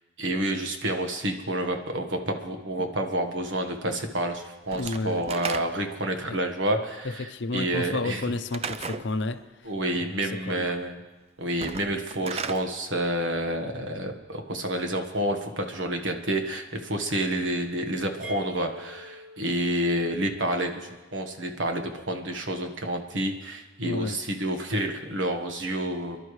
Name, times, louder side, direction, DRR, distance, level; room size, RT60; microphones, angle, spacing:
voice 1, 0.2-8.2 9.6-11.0 11.4-26.2, right 1 dB, 70° right, 1.4 m, -29 dB
Slam / Wood, 4.7-6.0 8.5-9.1 11.5-12.6, right 5 dB, 30° right, 0.4 m, -35 dB
voice 2, 4.8-5.2 6.3-6.4 7.0-9.7 10.0-10.7 23.8-24.2, left 3 dB, 65° left, 0.7 m, -31 dB
sound 1, 18.2-21.9, left 1 dB, 5° right, 1.3 m, -47 dB
27.5 x 11.5 x 3.2 m
head